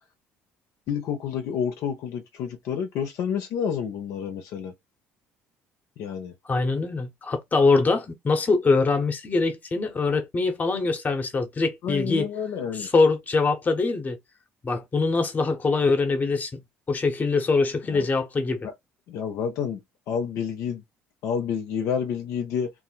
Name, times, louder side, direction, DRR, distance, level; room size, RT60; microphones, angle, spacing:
voice 1, 0.9-4.7 6.0-6.3 11.8-12.9 17.9-18.1 18.6-18.7 19.1-19.8 20.1-20.8 21.2-22.7, left 7 dB, 70° left, 0.7 m, -29 dB
voice 2, 6.5-12.3 12.7-14.2 14.6-16.6 16.9-18.7, left 3 dB, 30° left, 0.9 m, -23 dB
2.6 x 2.1 x 3.9 m
supercardioid pair, 85°, 5 cm